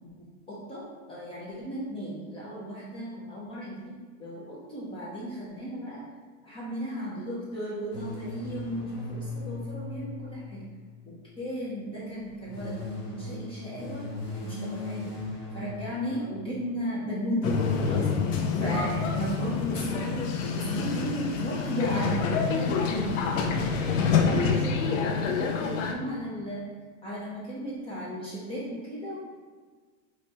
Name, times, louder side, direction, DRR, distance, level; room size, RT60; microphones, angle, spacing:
voice 1, 0.0-6.0 6.4-10.6 11.0-12.8 13.1-14.1 14.4-15.1 15.5-18.3 18.6-23.7 24.0-26.6 27.0-29.2, equal, 15° left, -7 dB, 0.6 m, -35 dB
sound 1, 7.9-11.3 12.2-17.0, left 2 dB, 30° left, 1.1 m, -38 dB
sound 2, 17.4-25.9, left 5 dB, 80° left, 0.7 m, -27 dB
5.0 x 3.1 x 2.8 m, 1.5 s
supercardioid pair, 155°, 39 cm